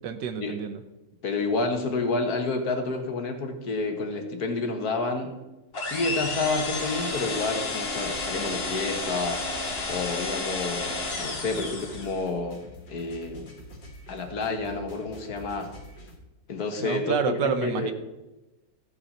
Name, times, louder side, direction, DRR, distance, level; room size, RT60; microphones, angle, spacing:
voice 1, 0.0-0.8 16.8-17.9, right 6 dB, 75° right, 9 dB, 1.5 m, -29 dB
voice 2, 1.2-5.3 5.8-9.4 9.9-12.6 12.9-13.5 14.1-15.7 16.5-17.9, left 3 dB, 60° left, 5 dB, 1.8 m, -29 dB
sound 1, 5.7-12.2, left 3 dB, 35° left, 1.5 m, -31 dB
sound 2, 8.0-16.2, left 1 dB, 75° left, 2.5 m, -46 dB
14.0 x 8.8 x 4.2 m, 1.0 s
omnidirectional pair, 1.9 m